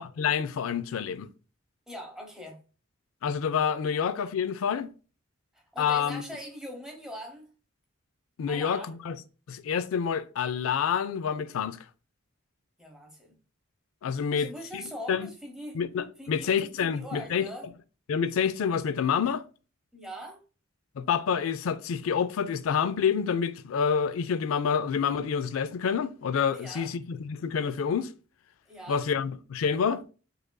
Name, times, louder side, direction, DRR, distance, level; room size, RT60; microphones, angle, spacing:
voice 1, 0.2-1.3 3.2-4.9 5.8-6.2 8.4-8.8 9.1-9.2 9.5-11.8 14.0-14.8 15.1-15.3 15.8-17.5 18.1-19.4 21.0-28.1 28.9-30.0, left 7 dB, 90° left, 0.3 m, -28 dB
voice 2, 1.9-2.6 5.5-7.5 8.5-9.0 12.8-13.4 14.1-15.8 16.2-17.7 19.9-20.4 26.5-26.9 28.6-29.1, equal, 5° right, 0.8 m, -42 dB
4.7 x 2.5 x 2.2 m
head